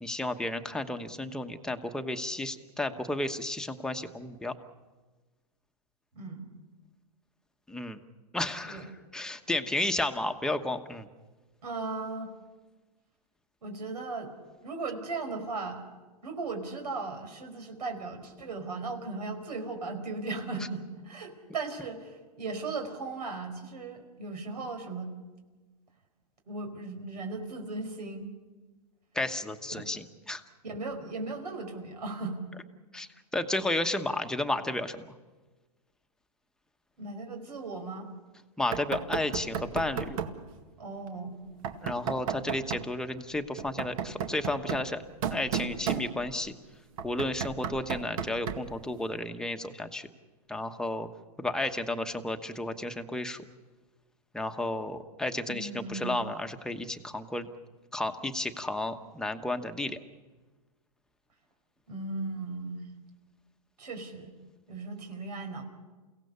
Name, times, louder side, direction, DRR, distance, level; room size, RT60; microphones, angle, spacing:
voice 1, 0.0-4.5 7.7-8.0 8.3-8.9 9.1-11.1 29.1-30.4 32.9-35.0 38.6-40.2 41.8-45.0 45.3-46.5 47.0-50.1 50.5-51.1 51.4-53.4 54.3-57.5 57.9-60.0, left 1 dB, 5° left, 6 dB, 1.1 m, -32 dB
voice 2, 6.1-6.6 8.7-8.9 11.6-12.3 13.6-14.3 14.6-15.8 16.2-25.1 26.5-28.3 29.8-29.9 30.6-32.4 37.0-38.1 40.8-41.4 55.5-56.2 61.9-62.8 63.8-64.3 64.7-65.6, right 3 dB, 85° right, 5 dB, 4.9 m, -37 dB
Knock, 38.7-40.4 41.6-42.9 43.6-46.5 47.0-48.8, right 7 dB, 60° right, 2.0 m, -34 dB
29.5 x 17.0 x 6.9 m, 1.3 s
hypercardioid pair, 135°, 20 cm